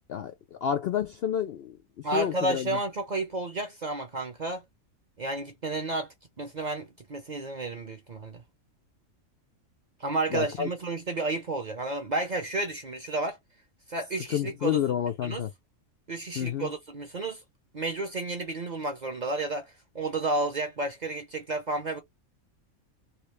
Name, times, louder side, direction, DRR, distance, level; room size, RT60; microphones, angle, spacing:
voice 1, 0.1-1.8 2.1-2.8 10.3-10.7 14.3-15.5 16.4-16.7, left 9 dB, 70° left, 0.6 m, -29 dB
voice 2, 2.0-4.6 5.2-8.4 10.0-13.4 13.9-14.8 15.2-15.4 16.1-17.4 17.7-22.0, right 2 dB, 45° right, 0.6 m, -31 dB
3.1 x 2.6 x 3.2 m
omnidirectional pair, 1.5 m